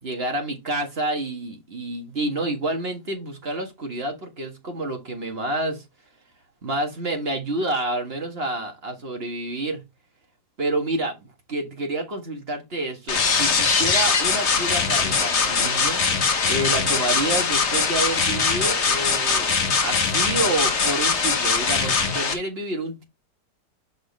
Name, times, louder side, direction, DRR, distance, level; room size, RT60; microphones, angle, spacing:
voice 1, 0.0-5.8 6.6-9.8 10.6-16.0 16.5-19.5 19.8-23.0, right 2 dB, 35° right, 1.8 m, -28 dB
sound 1, 13.1-22.3, left 5 dB, 45° left, 1.3 m, -21 dB
6.1 x 5.4 x 3.4 m
omnidirectional pair, 1.8 m